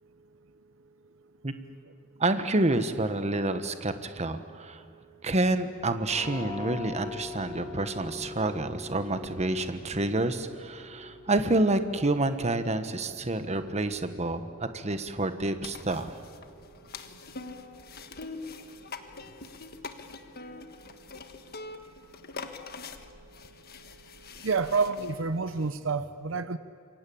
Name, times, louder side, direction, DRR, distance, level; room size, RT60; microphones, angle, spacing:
voice 1, 2.2-4.8 5.2-16.1, right 2 dB, 35° right, 10 dB, 1.3 m, -28 dB
sound 1, 6.1-17.6, left 4 dB, 30° left, 6.3 m, -45 dB
sound 2, 15.6-25.8, left 4 dB, 50° left, 1.4 m, -44 dB
voice 2, 24.4-26.6, right 4 dB, 70° right, 12 dB, 0.8 m, -28 dB
27.0 x 22.5 x 8.7 m, 2.2 s
head